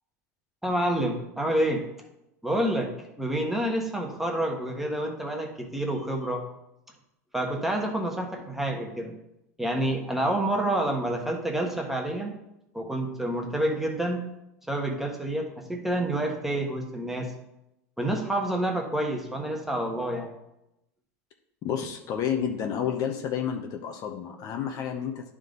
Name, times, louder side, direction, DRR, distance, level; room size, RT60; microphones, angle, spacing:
voice 1, 0.6-1.9 2.4-6.4 7.3-9.1 9.6-12.3 12.7-14.2 14.7-17.3 18.0-20.3, right 1 dB, 5° right, 1 dB, 1.3 m, -28 dB
voice 2, 21.6-25.3, left 8 dB, 45° left, 4 dB, 0.8 m, -30 dB
10.5 x 3.7 x 3.9 m, 0.88 s
hypercardioid pair, 95°, 8 cm